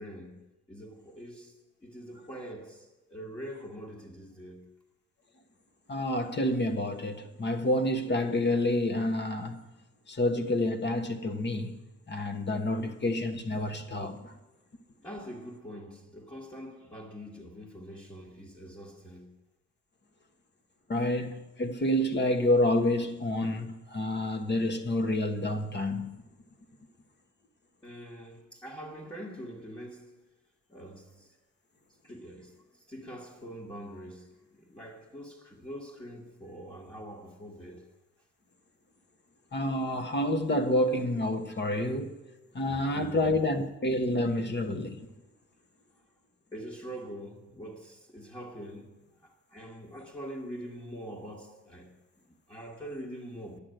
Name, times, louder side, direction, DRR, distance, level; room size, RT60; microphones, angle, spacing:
voice 1, 0.0-4.7 10.1-10.2 15.0-19.3 27.8-30.2 30.7-31.4 32.0-37.9 42.6-43.3 46.5-52.0 52.2-53.6, equal, 15° left, 1.7 m, -44 dB
voice 2, 5.9-9.6 10.1-11.8 12.1-14.4 20.9-26.2 39.5-42.1 42.5-45.0, left 1 dB, 35° left, 1.3 m, -28 dB
10.5 x 6.4 x 9.1 m
cardioid pair, 90°, 30 cm